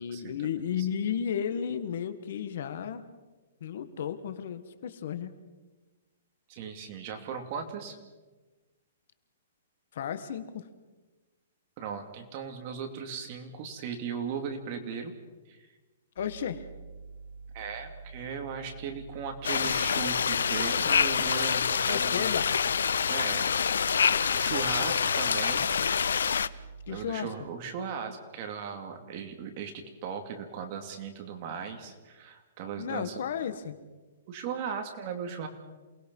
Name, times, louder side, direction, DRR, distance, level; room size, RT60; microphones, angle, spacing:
voice 1, 0.0-3.0 3.6-5.4 9.9-10.7 16.2-16.7 21.9-22.5 26.9-27.3 32.8-33.8, left 8 dB, 55° left, 11 dB, 1.6 m, -33 dB
voice 2, 6.5-8.0 11.8-15.1 15.5-15.7 17.5-22.3 23.1-23.5 24.3-25.7 26.9-29.7 30.0-33.2 34.3-35.5, right 6 dB, 35° right, 4 dB, 2.6 m, -37 dB
sound 1, 16.2-27.2, right 4 dB, 80° right, 3.2 m, -46 dB
sound 2, 19.4-26.5, left 7 dB, 90° left, 0.7 m, -26 dB
28.0 x 20.0 x 5.5 m, 1.2 s
hypercardioid pair, 165°, 0 cm